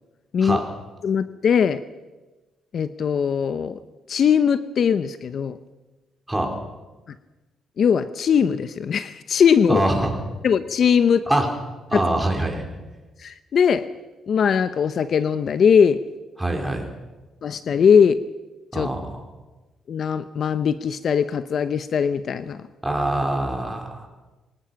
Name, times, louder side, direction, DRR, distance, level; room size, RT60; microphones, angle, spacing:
voice 1, 0.3-0.6 1.0-1.8 2.7-3.8 4.1-5.6 7.1-7.2 7.8-9.8 10.4-11.2 11.9-12.0 13.2-13.9 14.3-16.0 17.4-18.2 18.7-18.9 19.9-22.6, left 7 dB, 55° left, 13 dB, 0.8 m, -20 dB
voice 2, 9.7-10.1 11.3-11.5 11.9-12.7 16.4-16.8 18.7-19.2 22.8-24.1, right 1 dB, 10° right, 2 dB, 4.6 m, -24 dB
24.0 x 19.0 x 5.9 m, 1.2 s
cardioid pair, 90°, 0 cm